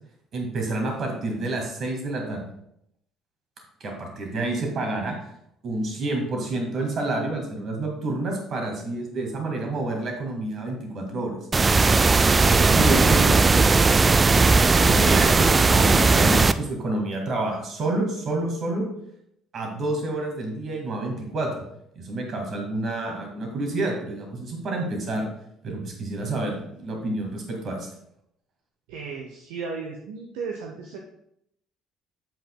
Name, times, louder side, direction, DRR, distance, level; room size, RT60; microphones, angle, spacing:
voice 1, 0.3-2.4 3.8-5.2 5.6-11.3 12.2-13.7 14.3-18.8 19.5-21.5 22.0-25.3 25.6-27.9, right 2 dB, 45° right, 1 dB, 2.0 m, -29 dB
sound 1, 11.5-16.5, right 3 dB, 25° right, 0.3 m, -17 dB
voice 2, 28.9-31.1, right 5 dB, 65° right, 1 dB, 0.6 m, -35 dB
7.8 x 7.6 x 2.3 m, 0.75 s
figure-of-eight pair, 50°, 0 cm